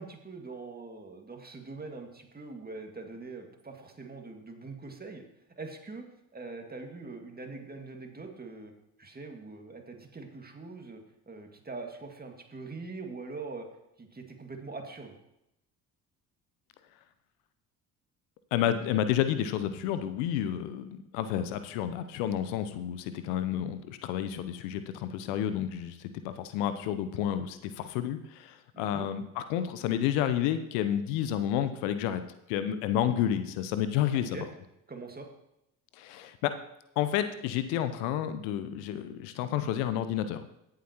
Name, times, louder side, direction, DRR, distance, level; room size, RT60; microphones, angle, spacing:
voice 1, 0.0-5.2 5.6-6.1 6.3-8.7 9.0-13.7 14.0-15.2 28.7-29.1 34.1-34.6 34.9-35.3, right 3 dB, 20° right, 3 dB, 2.0 m, -43 dB
voice 2, 18.5-32.2 32.5-34.4 36.0-36.5 37.0-40.5, left 10 dB, 70° left, 11 dB, 0.8 m, -30 dB
17.0 x 7.6 x 3.0 m, 0.84 s
hypercardioid pair, 55°, 44 cm